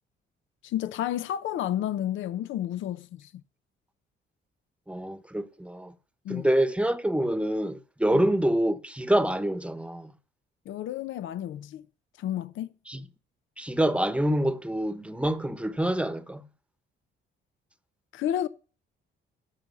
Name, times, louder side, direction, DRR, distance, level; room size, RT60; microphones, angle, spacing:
voice 1, 0.6-3.3 6.2-6.5 8.1-8.2 10.7-11.8 12.2-12.7 18.1-18.5, left 11 dB, 75° left, 0.7 m, -31 dB
voice 2, 4.9-5.9 6.3-10.1 12.9-13.0 13.6-16.5, right 1 dB, 5° right, 1.0 m, -26 dB
13.0 x 5.6 x 6.8 m
cardioid pair, 90°, 20 cm